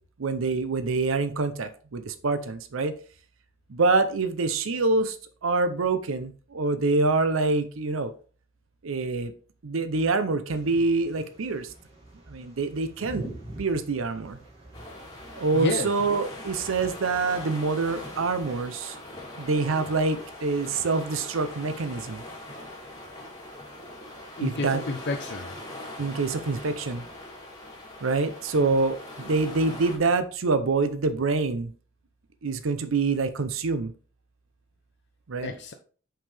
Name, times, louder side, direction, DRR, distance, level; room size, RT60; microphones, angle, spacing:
voice 1, 0.2-2.9 3.7-5.2 5.4-8.1 8.8-9.3 9.6-11.7 12.3-13.2 13.6-14.4 15.3-19.0 19.4-22.2 24.4-24.8 26.0-27.0 28.0-31.7 32.4-33.9 35.3-35.5, right 3 dB, 85° right, 10 dB, 0.6 m, -26 dB
sound 1, 10.5-18.6, right 1 dB, 30° right, 2.4 m, -45 dB
sound 2, 14.7-30.0, left 1 dB, 20° left, 2.6 m, -41 dB
voice 2, 15.5-15.9 24.4-25.5 35.4-35.7, left 3 dB, 55° left, 4 dB, 0.6 m, -30 dB
5.7 x 5.4 x 3.3 m, 0.40 s
head